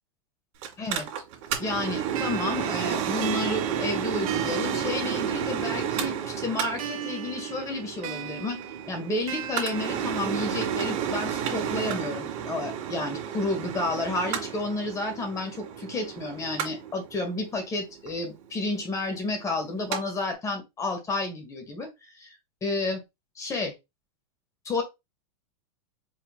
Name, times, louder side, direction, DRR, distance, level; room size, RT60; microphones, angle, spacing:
Mechanical fan, 0.6-20.0 20.3-20.4, right 8 dB, 50° right, 2.4 m, -32 dB
voice 1, 1.6-8.6 8.9-21.9 22.2-22.3 22.6-23.0 23.4-23.7 24.7-24.8, left 2 dB, 20° left, 4 dB, 1.8 m, -31 dB
sound 1, 2.1-5.8 6.8-10.8, right 9 dB, 80° right, 1.3 m, -38 dB
4.8 x 4.5 x 2.3 m, 0.22 s
supercardioid pair, 145°, 18 cm